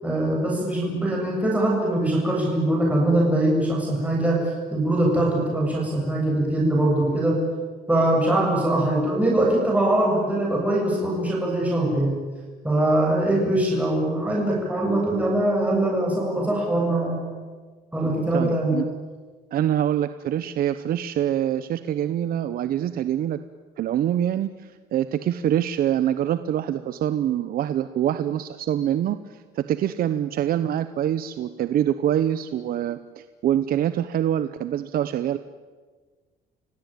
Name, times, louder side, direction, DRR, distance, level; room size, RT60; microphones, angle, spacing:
voice 1, 0.0-4.4 4.7-7.4 7.9-12.2 12.6-17.3 17.9-18.8, right 1 dB, 10° right, -2 dB, 7.9 m, -22 dB
voice 2, 18.3-18.8 19.5-23.4 23.8-35.4, right 10 dB, 60° right, 12 dB, 0.9 m, -25 dB
29.5 x 16.5 x 9.2 m, 1.4 s
cardioid pair, 110°, 17 cm